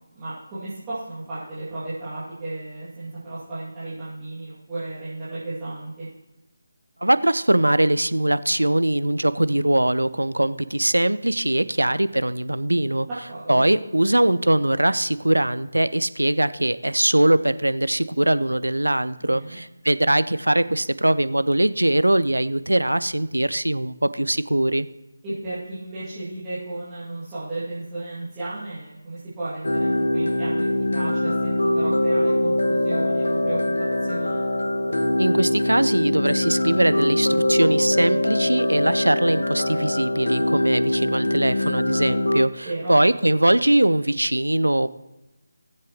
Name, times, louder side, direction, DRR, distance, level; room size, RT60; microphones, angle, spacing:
voice 1, 0.1-6.1 13.1-13.6 19.2-19.6 25.2-34.4 42.6-42.9, right 2 dB, 15° right, -13 dB, 2.3 m, -34 dB
voice 2, 7.0-13.1 13.5-24.9 35.2-44.9, right 1 dB, 80° right, 15 dB, 0.5 m, -21 dB
sound 1, 29.6-42.5, left 1 dB, 70° left, 1.1 m, -22 dB
18.5 x 7.6 x 3.0 m, 0.98 s
figure-of-eight pair, 155°, 0 cm